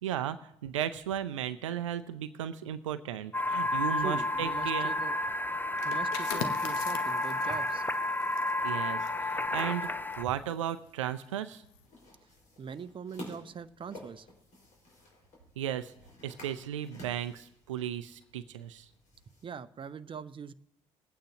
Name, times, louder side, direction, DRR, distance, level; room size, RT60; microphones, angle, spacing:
voice 1, 0.0-4.9 8.6-9.9 10.2-11.6 15.6-15.9 16.2-18.9, right 10 dB, 80° right, 12 dB, 0.5 m, -35 dB
sound 1, 3.3-10.2, left 2 dB, 10° left, 0.7 m, -31 dB
voice 2, 4.0-5.2 5.8-7.8 12.6-14.3 19.4-20.5, right 6 dB, 35° right, 13 dB, 0.7 m, -42 dB
sound 2, 5.7-11.2 11.5-11.8, left 8 dB, 75° left, 1.0 m, -43 dB
sound 3, 11.8-19.4, left 1 dB, 55° left, 4.8 m, -52 dB
19.5 x 8.9 x 2.9 m, 0.76 s
figure-of-eight pair, 50°, 16 cm